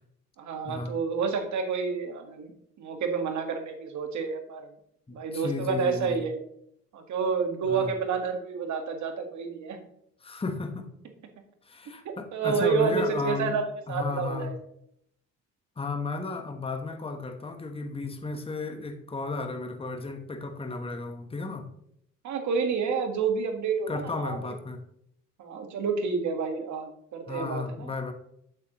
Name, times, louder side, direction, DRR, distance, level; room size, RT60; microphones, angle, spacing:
voice 1, 0.4-2.5 2.8-4.7 5.1-6.4 6.9-9.8 12.0-13.6 13.9-14.6 22.2-24.5 25.4-27.9, right 5 dB, 70° right, 5 dB, 1.6 m, -29 dB
voice 2, 5.1-6.3 7.7-7.9 10.2-10.9 11.6-13.5 13.9-14.5 15.8-21.7 23.9-24.8 27.3-28.1, left 3 dB, 20° left, 5 dB, 1.1 m, -34 dB
8.5 x 7.8 x 3.0 m, 0.70 s
cardioid pair, 90°, 30 cm